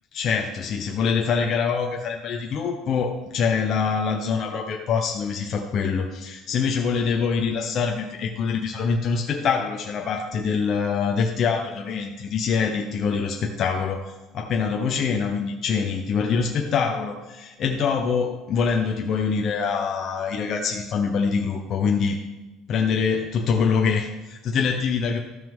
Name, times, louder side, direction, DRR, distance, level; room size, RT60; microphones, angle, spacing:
voice 1, 0.1-22.2 22.7-25.2, left 5 dB, 35° left, 1 dB, 0.7 m, -24 dB
13.5 x 6.3 x 3.6 m, 1.1 s
cardioid pair, 175°, 0 cm